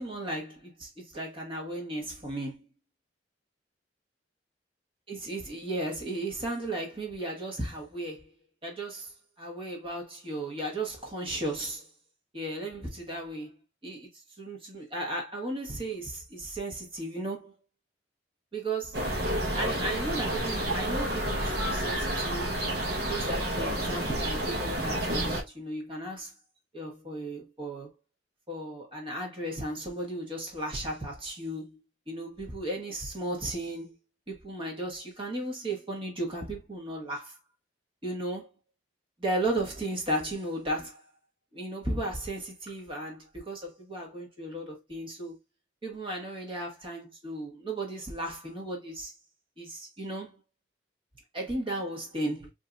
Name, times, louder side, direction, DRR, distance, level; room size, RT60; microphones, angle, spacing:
voice 1, 0.0-2.7 5.1-8.3 8.6-9.1 9.4-11.9 12.3-13.5 13.8-14.1 14.4-17.5 18.5-19.0 19.6-22.5 23.1-26.3 26.7-27.9 28.5-31.8 32.1-33.9 34.3-37.4 38.0-38.5 39.2-41.0 41.5-45.4 45.8-49.1 49.6-50.4 51.3-52.5, right 1 dB, 30° right, 1.4 m, -35 dB
sound 1, 18.9-25.4, right 1 dB, 60° right, 1.1 m, -30 dB
4.6 x 2.8 x 2.3 m
head